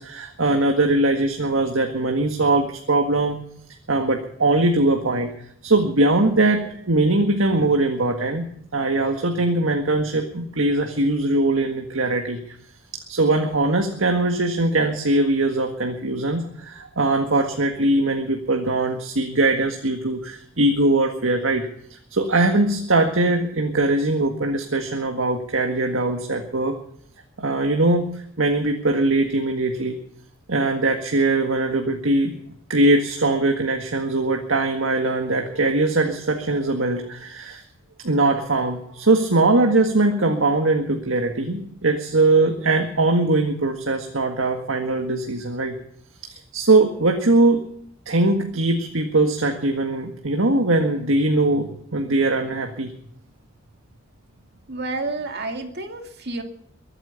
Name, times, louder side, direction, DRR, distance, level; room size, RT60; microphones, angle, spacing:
voice 1, 0.0-3.4 3.9-5.3 5.6-12.6 13.1-21.7 22.1-26.8 27.4-30.0 30.5-32.3 32.7-37.6 38.0-45.8 46.3-47.7 48.1-52.9, right 2 dB, 70° right, 4 dB, 1.7 m, -21 dB
voice 2, 54.7-56.4, right 2 dB, 50° right, 5 dB, 2.5 m, -30 dB
23.0 x 9.1 x 7.0 m, 0.67 s
head